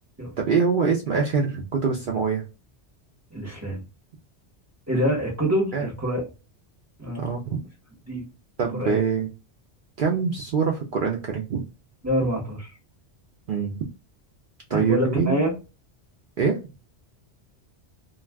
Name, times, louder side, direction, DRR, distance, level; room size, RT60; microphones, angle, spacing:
voice 1, 0.4-2.4 5.7-5.9 7.2-7.6 8.6-9.3 10.0-11.6 13.5-13.9 14.7-15.4 16.4-16.6, right 5 dB, 60° right, 1 dB, 0.6 m, -24 dB
voice 2, 3.3-3.8 4.9-6.2 7.0-7.2 8.1-8.3 8.7-9.0 12.0-12.7 14.7-15.5, equal, 15° right, -2 dB, 0.9 m, -25 dB
2.3 x 2.3 x 3.2 m, 0.30 s
omnidirectional pair, 1.2 m